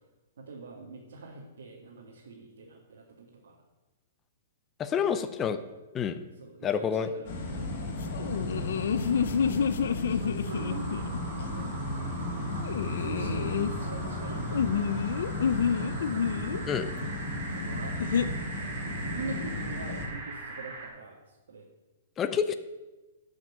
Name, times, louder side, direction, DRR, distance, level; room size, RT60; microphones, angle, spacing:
voice 1, 0.4-3.6 4.9-5.5 6.4-8.0 8.2-8.6 9.9-11.0 11.4-11.7 12.9-14.7 15.0-16.5 17.5-18.0 18.8-21.7, right 3 dB, 80° right, -2 dB, 2.2 m, -44 dB
voice 2, 4.8-5.6 5.9-6.1 6.6-7.1 16.7-16.8 22.2-22.5, left 7 dB, 15° left, 10 dB, 0.6 m, -28 dB
sound 1, 7.3-20.1, left 1 dB, 45° left, 3.0 m, -34 dB
sound 2, 8.1-11.2 12.6-13.7 14.5-16.6 18.0-18.3, left 7 dB, 75° left, 0.7 m, -29 dB
sound 3, 10.4-20.9, right 3 dB, 35° right, 3.1 m, -42 dB
12.0 x 6.3 x 6.7 m, 1.1 s
hypercardioid pair, 165°, 0 cm